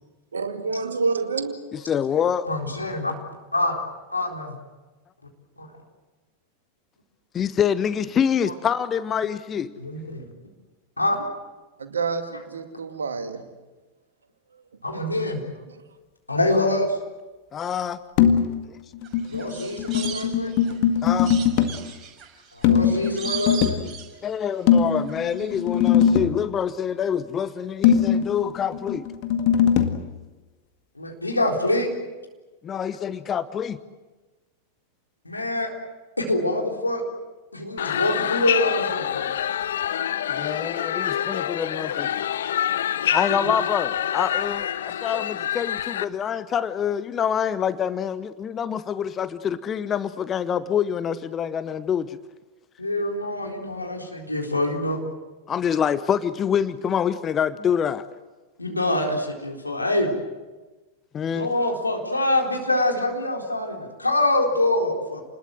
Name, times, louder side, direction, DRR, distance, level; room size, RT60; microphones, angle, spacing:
voice 1, 0.3-1.6 11.8-13.5, right 4 dB, 70° right, 7 dB, 2.3 m, -28 dB
voice 2, 1.7-2.5 7.3-9.7 17.5-18.0 21.0-21.3 24.2-29.1 32.6-33.8 40.3-42.1 43.1-52.2 55.5-58.0 61.1-61.5, left 8 dB, 25° left, 15 dB, 0.8 m, -26 dB
voice 3, 2.4-3.1 3.5-3.8 4.1-4.6 5.6-5.7 9.8-10.2 11.0-11.2 14.8-15.4 16.3-16.9 19.3-20.5 22.5-23.8 31.0-31.9 35.2-35.7 36.2-37.0 37.5-39.3 43.3-43.5 52.8-55.0 58.6-60.1 61.3-65.2, left 1 dB, 85° left, 1 dB, 4.1 m, -25 dB
sound 1, 18.2-18.6 18.9-21.8 22.6-23.9 24.7-26.4 27.8-30.0, left 8 dB, 45° left, 1.9 m, -21 dB
sound 2, 19.0-20.8 21.2-24.6 24.9-25.5 25.8-25.9, right 8 dB, 25° right, 5.8 m, -37 dB
sound 3, 37.8-46.0, left 10 dB, 60° left, 0.8 m, -26 dB
29.5 x 20.5 x 7.7 m, 1.2 s
figure-of-eight pair, 90°, 0 cm